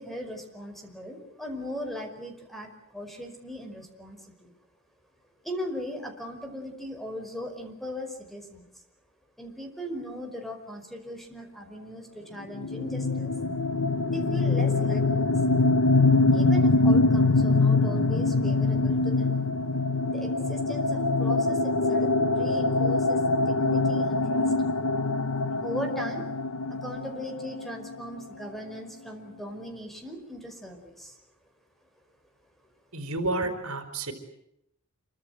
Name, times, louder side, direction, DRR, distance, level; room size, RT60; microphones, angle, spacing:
voice 1, 0.0-4.5 5.4-8.7 9.4-13.3 14.1-15.3 16.3-19.5 20.0-24.6 25.6-26.2 26.7-31.2, equal, ahead, 4 dB, 5.1 m, -38 dB
sound 1, 12.5-28.2, left 3 dB, 85° left, 1.2 m, -24 dB
voice 2, 32.9-34.1, right 2 dB, 75° right, 8 dB, 4.4 m, -30 dB
27.5 x 24.5 x 8.0 m, 0.79 s
head